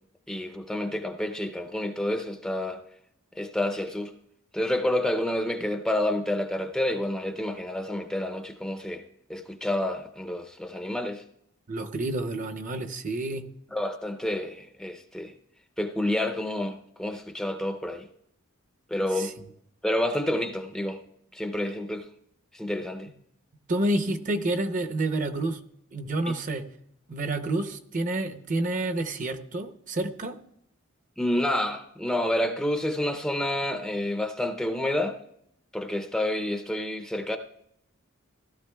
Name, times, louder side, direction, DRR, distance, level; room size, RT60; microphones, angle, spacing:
voice 1, 0.3-2.8 3.4-4.1 4.5-9.0 9.3-11.2 13.7-15.3 15.8-18.1 18.9-19.3 19.8-21.0 21.3-22.1 22.5-23.1 26.3-26.4 31.2-35.2 35.7-37.4, left 1 dB, 5° left, 0.5 m, -29 dB
voice 2, 11.7-13.4 19.2-19.3 23.7-25.6 25.9-26.7 27.1-30.4, right 2 dB, 40° right, 0.7 m, -29 dB
16.5 x 12.5 x 2.2 m
head